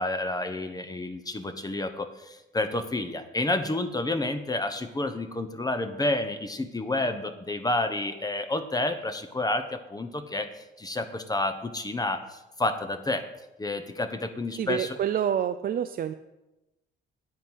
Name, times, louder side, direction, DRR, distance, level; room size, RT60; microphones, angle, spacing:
voice 1, 0.0-13.3 13.6-15.0, left 2 dB, 20° left, 9 dB, 1.0 m, -30 dB
voice 2, 14.6-16.1, right 9 dB, 50° right, 9 dB, 0.5 m, -27 dB
9.5 x 8.1 x 5.5 m, 0.96 s
cardioid pair, 90°, 20 cm